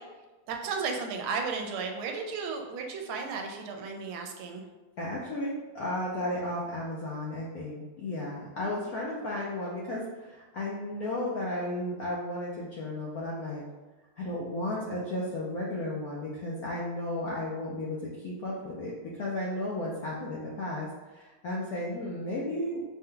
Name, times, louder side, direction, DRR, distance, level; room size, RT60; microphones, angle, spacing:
voice 1, 0.5-4.6, right 5 dB, 80° right, 3 dB, 1.4 m, -34 dB
voice 2, 5.0-13.6 14.2-18.0 18.2-22.8, left 1 dB, 75° left, -5 dB, 0.8 m, -34 dB
5.4 x 2.2 x 3.7 m, 1.2 s
omnidirectional pair, 2.3 m